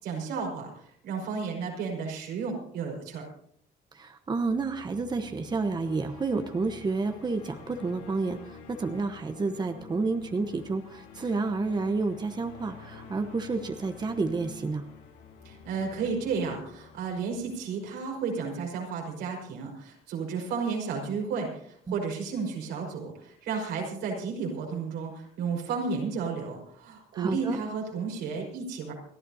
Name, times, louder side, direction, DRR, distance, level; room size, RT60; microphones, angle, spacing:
voice 1, 0.0-3.3 15.4-28.9, right 5 dB, 85° right, 0 dB, 5.3 m, -33 dB
voice 2, 3.9-14.8 21.9-22.0 27.1-27.6, right 3 dB, 25° right, 7 dB, 1.1 m, -30 dB
sound 1, 4.3-18.5, left 6 dB, 90° left, 7.0 m, -48 dB
29.0 x 11.5 x 2.8 m, 0.68 s
cardioid pair, 110°, 17 cm